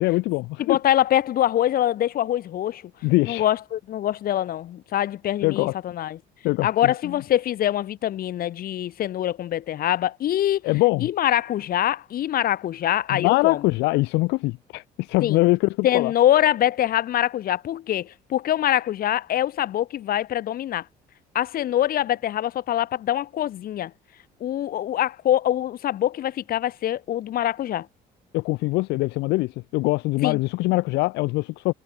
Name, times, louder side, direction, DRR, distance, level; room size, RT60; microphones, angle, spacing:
voice 1, 0.0-0.8 3.0-3.5 5.4-5.7 6.4-6.9 10.6-11.1 13.1-16.1 28.3-31.7, left 21 dB, 90° left, 0.7 m, -23 dB
voice 2, 0.6-2.8 3.2-6.2 6.6-10.6 11.0-13.6 15.2-15.4 15.8-20.8 21.3-23.9 24.4-27.9 30.2-30.4, left 12 dB, 60° left, 2.2 m, -24 dB
cardioid pair, 110°, 17 cm